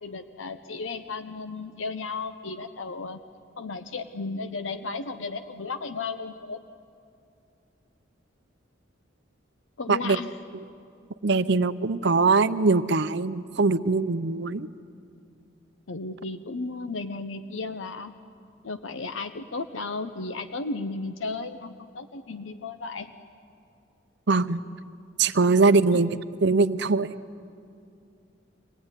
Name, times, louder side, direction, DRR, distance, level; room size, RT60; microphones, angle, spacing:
voice 1, 0.0-3.2 3.6-6.6 9.8-10.3 15.9-18.1 18.6-23.1 25.9-26.0, left 3 dB, 80° left, 9 dB, 0.8 m, -34 dB
voice 2, 9.9-10.2 11.2-14.7 24.3-24.6 25.2-27.1, right 4 dB, 60° right, 14 dB, 0.7 m, -22 dB
25.0 x 18.5 x 9.8 m, 2.5 s
head